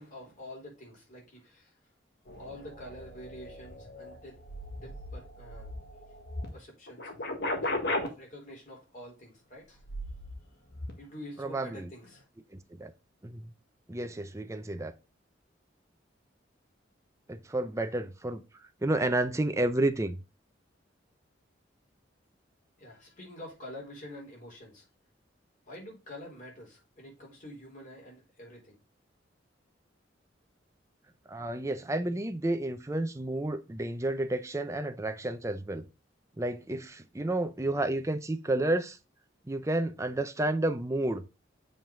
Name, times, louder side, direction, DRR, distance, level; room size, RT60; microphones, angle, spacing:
voice 1, 0.0-1.8 2.4-4.4 4.8-5.7 6.5-7.1 7.6-7.9 8.2-9.8 11.0-12.2 22.8-24.9 25.7-28.8, left 1 dB, 45° left, 4.0 m, -47 dB
sound 1, 2.3-6.5 6.9-8.1 9.8-10.4 10.7-10.9, left 1 dB, 60° left, 1.7 m, -37 dB
voice 2, 11.4-11.9 12.8-12.9 13.2-13.5 13.9-15.0 17.3-18.4 18.8-20.2 31.3-35.8 36.4-39.0 39.5-41.2, right 1 dB, 15° right, 0.6 m, -31 dB
7.4 x 5.3 x 3.8 m
head